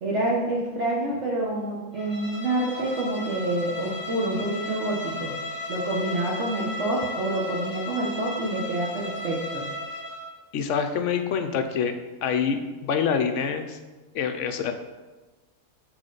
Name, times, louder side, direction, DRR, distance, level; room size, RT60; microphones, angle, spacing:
voice 1, 0.0-5.3 5.7-9.6, right 1 dB, 55° right, -4 dB, 1.2 m, -27 dB
Bowed string instrument, 2.0-10.3, left 2 dB, 30° left, 0.4 m, -35 dB
voice 2, 10.5-11.9 12.2-13.8 14.1-14.7, left 6 dB, 65° left, 7 dB, 0.8 m, -26 dB
7.6 x 4.5 x 3.9 m, 1.2 s
omnidirectional pair, 1.5 m